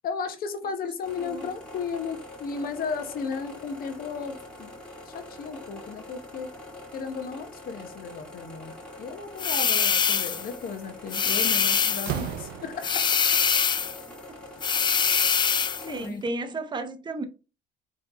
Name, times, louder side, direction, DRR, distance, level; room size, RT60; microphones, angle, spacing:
voice 1, 0.0-4.7 5.1-6.5 6.9-8.7 9.0-12.9 15.8-16.2, left 5 dB, 60° left, 1.0 m, -35 dB
sound 1, 1.0-16.1, left 1 dB, 5° left, 1.9 m, -44 dB
sound 2, 9.4-10.5 11.1-12.2 12.8-14.0 14.6-15.9, left 6 dB, 25° left, 0.4 m, -24 dB
Slam, 10.7-10.9 11.3-13.2, right 12 dB, 70° right, 0.4 m, -35 dB
voice 2, 15.9-17.2, right 2 dB, 25° right, 0.8 m, -33 dB
3.7 x 3.2 x 4.1 m
cardioid pair, 110°, 17 cm